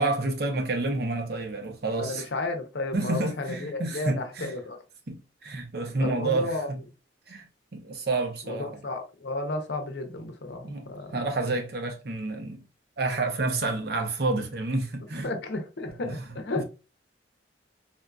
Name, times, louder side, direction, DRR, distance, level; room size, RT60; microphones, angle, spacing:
voice 1, 0.0-2.3 2.9-4.5 5.1-6.8 7.3-7.5 7.7-8.8 10.6-12.6 13.0-15.3 16.0-16.2 16.6-16.7, right 2 dB, 60° right, 0.7 m, -29 dB
voice 2, 2.0-4.8 6.0-6.7 8.5-11.2 15.2-16.6, left 2 dB, 70° left, 0.7 m, -33 dB
3.7 x 2.5 x 2.2 m
head